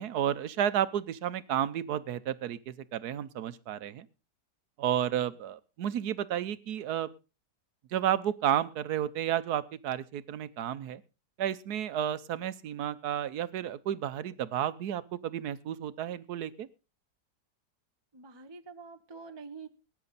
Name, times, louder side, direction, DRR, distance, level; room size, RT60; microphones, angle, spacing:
voice 1, 0.0-4.1 4.8-7.1 7.9-11.0 11.4-16.7, right 10 dB, 65° right, 15 dB, 1.3 m, -32 dB
voice 2, 18.1-19.7, right 4 dB, 25° right, 8 dB, 0.6 m, -46 dB
19.5 x 9.7 x 4.1 m, 0.32 s
omnidirectional pair, 1.9 m